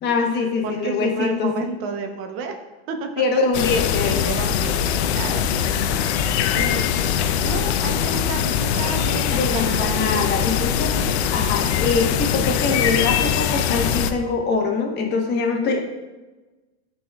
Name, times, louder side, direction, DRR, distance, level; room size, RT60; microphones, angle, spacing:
voice 1, 0.0-1.5 3.2-4.2 9.3-10.9 11.3-15.8, left 4 dB, 30° left, 1 dB, 1.2 m, -23 dB
voice 2, 0.6-2.6 2.9-3.4 4.0-5.4 6.0-9.9 11.1-11.2, right 4 dB, 40° right, 5 dB, 0.8 m, -31 dB
sound 1, 3.5-14.1, left 8 dB, 70° left, 0.6 m, -22 dB
10.5 x 4.2 x 2.3 m, 1.1 s
supercardioid pair, 130°, 34 cm